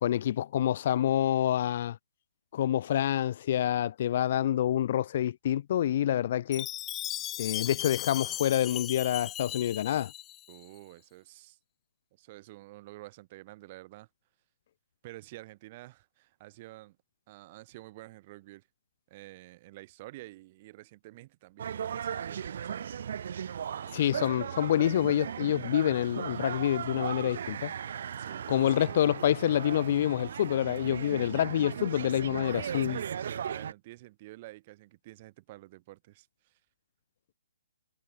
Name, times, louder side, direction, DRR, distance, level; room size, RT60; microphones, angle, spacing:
voice 1, 0.0-2.0 2.5-6.7 7.4-10.1 23.9-27.7 28.5-33.0, left 11 dB, 45° left, 0.4 m, -27 dB
Chime, 6.5-10.6, left 13 dB, 20° left, 1.1 m, -37 dB
voice 2, 10.5-11.6 12.2-14.1 15.0-17.0 17.3-18.7 19.1-23.0 28.2-28.9 32.9-36.6, right 18 dB, 35° right, 2.2 m, -49 dB
sound 1, 21.6-33.7, right 8 dB, 55° right, 0.5 m, -37 dB
figure-of-eight pair, 135°, 0 cm